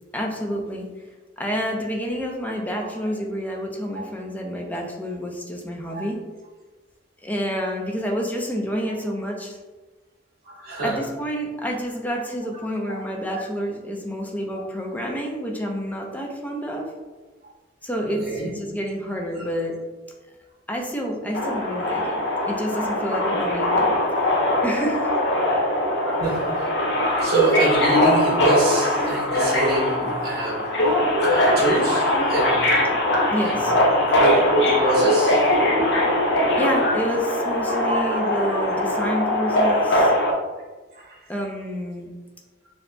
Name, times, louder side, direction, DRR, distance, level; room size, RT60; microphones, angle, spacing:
voice 1, 0.1-0.9 1.4-6.2 7.2-9.6 10.8-16.9 17.8-19.8 20.7-23.9 24.3-25.1 33.3-33.7 36.6-40.1 41.3-42.1, equal, 10° left, 0 dB, 0.6 m, -28 dB
voice 2, 10.4-11.1 12.8-13.0 13.3-13.4 18.1-18.5 19.3-19.5 21.9-22.0 26.0-26.8 27.2-30.9 31.2-32.8 33.2-33.6 34.0-35.5 37.7-38.1 38.3-38.6 40.9-41.3, right 2 dB, 55° right, -3 dB, 1.3 m, -25 dB
Subway metro underground, 21.3-40.3, left 1 dB, 65° left, 0.8 m, -21 dB
6.6 x 2.8 x 2.2 m, 1.3 s
head